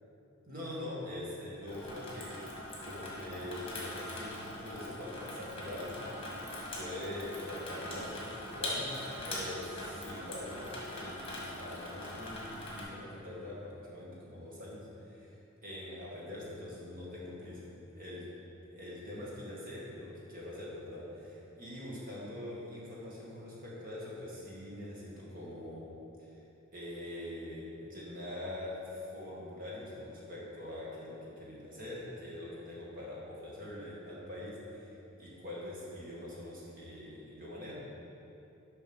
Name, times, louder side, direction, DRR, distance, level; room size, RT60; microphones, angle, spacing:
voice 1, 0.4-2.3 2.8-6.4 6.7-15.4 15.6-17.7 18.0-18.3 18.6-25.8 26.2-26.4 26.7-37.7, left 1 dB, 40° right, -6 dB, 2.0 m, -43 dB
Water tap faucet / Sink (filling or washing), 1.7-12.8, left 1 dB, 25° left, 1.7 m, -42 dB
7.1 x 5.6 x 6.2 m, 2.9 s
head